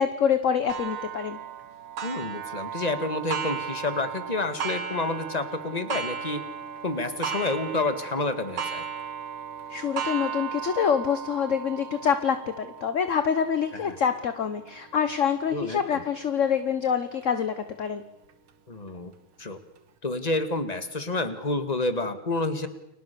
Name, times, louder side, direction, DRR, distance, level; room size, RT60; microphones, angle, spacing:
voice 1, 0.0-1.4 9.7-18.0, left 7 dB, 45° left, 10 dB, 1.2 m, -26 dB
Clock, 0.7-16.0 16.6-16.7 17.2-17.3 18.3-18.4, right 7 dB, 80° right, 2.4 m, -36 dB
voice 2, 2.0-6.4 6.8-8.9 13.7-14.0 15.5-16.0 18.7-19.1 19.4-19.6 20.0-22.7, left 2 dB, 20° left, 9 dB, 2.0 m, -29 dB
30.0 x 23.0 x 6.9 m, 0.80 s
omnidirectional pair, 2.3 m